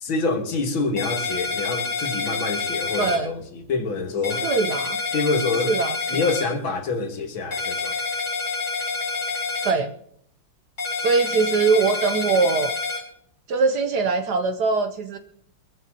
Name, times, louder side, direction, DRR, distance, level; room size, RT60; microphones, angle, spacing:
voice 1, 0.0-4.5 5.1-5.8 6.1-8.0, left 3 dB, 75° left, 2.2 m, -26 dB
sound 1, 1.0-3.2 4.2-6.4 7.5-9.7 10.8-13.0, left 4 dB, 35° left, 4.5 m, -27 dB
voice 2, 3.0-3.3 4.4-5.0 5.7-6.2 9.6-9.9 11.0-12.7 13.5-15.2, right 4 dB, 65° right, 1.1 m, -22 dB
22.5 x 14.0 x 2.8 m
omnidirectional pair, 2.3 m